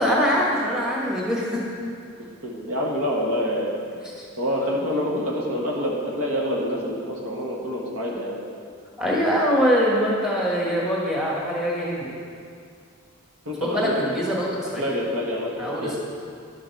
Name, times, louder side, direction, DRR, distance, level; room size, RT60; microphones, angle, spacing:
voice 1, 0.0-1.6 4.2-4.3 9.0-12.2 13.6-14.9 15.6-16.0, equal, 5° right, -5 dB, 1.5 m, -23 dB
voice 2, 2.4-3.8 4.4-8.4 13.4-14.1 14.8-16.0, equal, 75° right, -2 dB, 1.4 m, -27 dB
11.0 x 6.6 x 4.6 m, 2.3 s
head